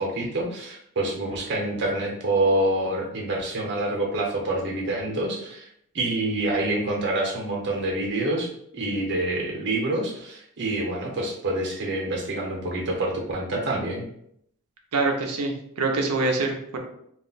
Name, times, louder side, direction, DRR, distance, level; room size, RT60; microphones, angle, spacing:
voice 1, 0.0-5.7 5.9-14.0, right 1 dB, 55° right, 0 dB, 0.8 m, -27 dB
voice 2, 14.9-16.8, right 3 dB, 85° right, 2 dB, 0.5 m, -25 dB
2.4 x 2.1 x 3.8 m, 0.70 s
head